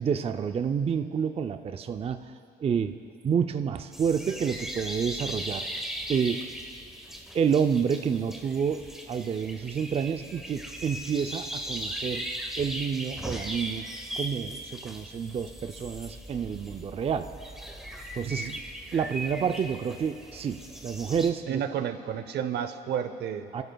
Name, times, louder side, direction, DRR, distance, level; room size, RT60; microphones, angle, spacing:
voice 1, 0.0-2.3 2.6-3.0 3.2-5.8 6.1-6.4 7.3-8.8 9.1-12.3 12.6-13.9 14.1-17.3 18.1-18.5 18.9-21.6 23.5-23.6, right 7 dB, 35° right, 8 dB, 0.4 m, -29 dB
sound 1, 3.9-21.3, equal, ahead, 1.0 m, -38 dB
voice 2, 21.5-23.5, right 8 dB, 70° right, 10 dB, 0.7 m, -31 dB
29.0 x 12.0 x 2.3 m, 2.6 s
cardioid pair, 110°, 18 cm